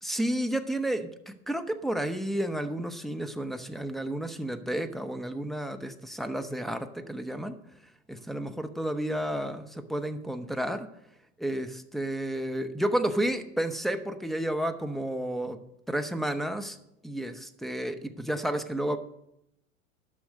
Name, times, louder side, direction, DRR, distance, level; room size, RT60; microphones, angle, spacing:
voice 1, 0.0-7.6 8.1-10.9 11.4-15.6 15.9-16.8 17.0-19.0, right 1 dB, ahead, 6 dB, 0.8 m, -31 dB
11.5 x 6.3 x 6.5 m, 0.81 s
hypercardioid pair, 95°, 41 cm